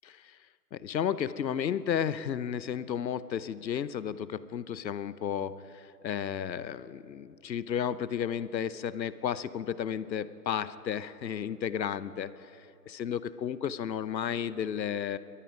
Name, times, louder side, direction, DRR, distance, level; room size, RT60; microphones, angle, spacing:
voice 1, 0.0-0.4 0.7-12.3 12.9-15.2, left 8 dB, 85° left, 15 dB, 0.8 m, -33 dB
21.0 x 13.0 x 5.0 m, 2.7 s
hypercardioid pair, 165°, 50 cm